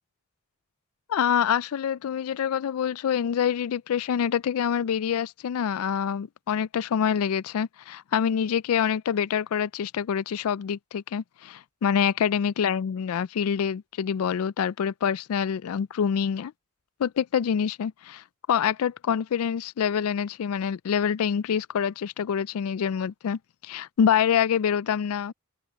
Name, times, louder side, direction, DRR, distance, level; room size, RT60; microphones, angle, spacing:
voice 1, 1.1-16.5 17.0-25.3, left 8 dB, 85° left, 0.4 m, -26 dB
head